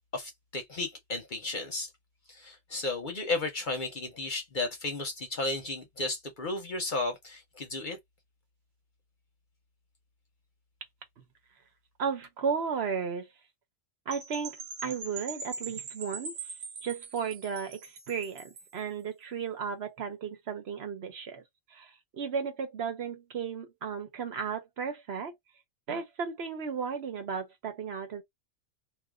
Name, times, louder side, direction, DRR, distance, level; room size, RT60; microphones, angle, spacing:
voice 1, 0.1-1.9 2.3-8.0, left 2 dB, 45° left, 0.8 m, -34 dB
voice 2, 12.0-13.3 14.1-16.4 16.8-21.4 21.7-25.3 25.9-28.2, right 6 dB, 60° right, 1.0 m, -34 dB
Percussion / Wind chime, 14.1-18.8, right 5 dB, 85° right, 1.2 m, -42 dB
2.5 x 2.4 x 3.5 m
omnidirectional pair, 1.3 m